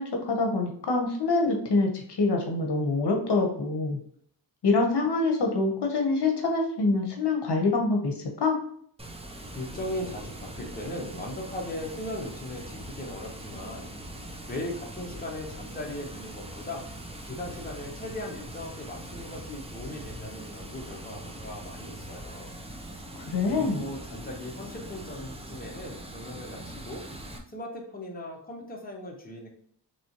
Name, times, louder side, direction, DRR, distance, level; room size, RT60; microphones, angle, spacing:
voice 1, 0.0-4.0 4.6-8.6 23.3-23.8, left 3 dB, 65° left, 2 dB, 0.9 m, -25 dB
Water, 9.0-27.4, right 1 dB, 15° right, 0.5 m, -42 dB
voice 2, 9.5-13.9 14.5-16.9 17.2-22.5 23.4-27.0 27.5-29.5, left 1 dB, 20° left, -1 dB, 1.0 m, -38 dB
4.2 x 3.1 x 2.9 m, 0.63 s
wide cardioid pair, 90°, 43 cm